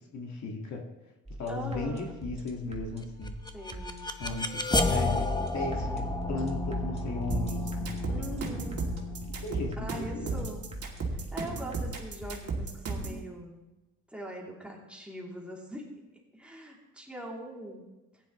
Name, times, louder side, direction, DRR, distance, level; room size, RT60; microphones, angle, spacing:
voice 1, 0.1-0.9 1.4-3.3 4.2-8.3 8.6-8.8 9.4-10.5, left 3 dB, 65° left, 1 dB, 1.9 m, -36 dB
sound 1, 1.3-12.4, right 1 dB, 20° right, 2.1 m, -44 dB
voice 2, 1.5-2.1 3.5-4.1 8.1-8.8 9.8-10.6 11.3-13.6 14.1-15.9 16.3-17.8, equal, 5° right, -3 dB, 2.9 m, -41 dB
sound 2, 3.3-12.2, left 2 dB, 15° left, 0.9 m, -33 dB
sound 3, 7.3-13.2, right 3 dB, 55° right, 2.5 m, -34 dB
15.0 x 10.0 x 3.1 m, 1.1 s
cardioid pair, 90°, 30 cm